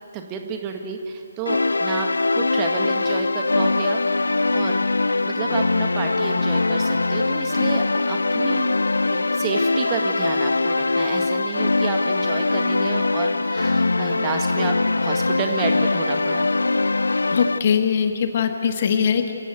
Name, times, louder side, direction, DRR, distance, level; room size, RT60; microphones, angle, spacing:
voice 1, 0.1-2.1 2.4-4.8 5.1-8.7 9.1-16.5, right 6 dB, 20° right, 4 dB, 1.7 m, -31 dB
sound 1, 1.5-17.6, left 3 dB, 70° left, 0.5 m, -22 dB
voice 2, 17.3-19.3, left 7 dB, 40° left, 7 dB, 1.6 m, -21 dB
27.5 x 16.0 x 9.5 m, 2.5 s
figure-of-eight pair, 140°, 0 cm